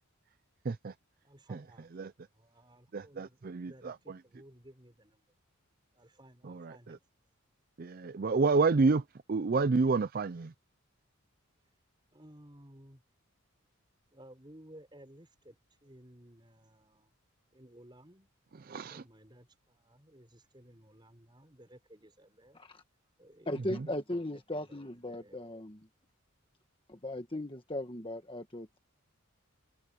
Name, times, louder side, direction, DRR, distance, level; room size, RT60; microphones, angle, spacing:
voice 1, 1.2-5.3 5.9-7.0 12.1-13.0 14.1-17.1 17.5-18.3 18.8-22.6 23.2-23.6 23.8-25.6, right 1 dB, 20° right, 5.3 m, -57 dB
voice 2, 2.9-4.2 6.4-7.0 7.8-10.5 18.6-19.0 23.7-23.9, right 4 dB, 40° right, 0.4 m, -30 dB
voice 3, 23.5-25.8 26.9-28.8, left 1 dB, 25° left, 1.5 m, -38 dB
head